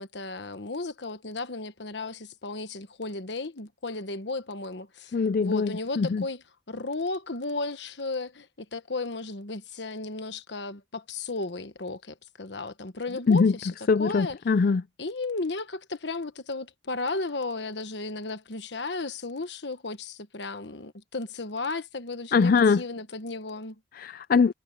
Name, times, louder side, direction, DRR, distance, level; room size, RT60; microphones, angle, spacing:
voice 1, 0.0-6.4 6.7-13.7 14.0-14.4 15.0-23.8, left 3 dB, 65° left, 1.3 m, -34 dB
voice 2, 5.1-6.2 13.3-13.5 13.9-14.8 22.3-22.8 24.0-24.5, left 5 dB, 50° left, 0.4 m, -22 dB
head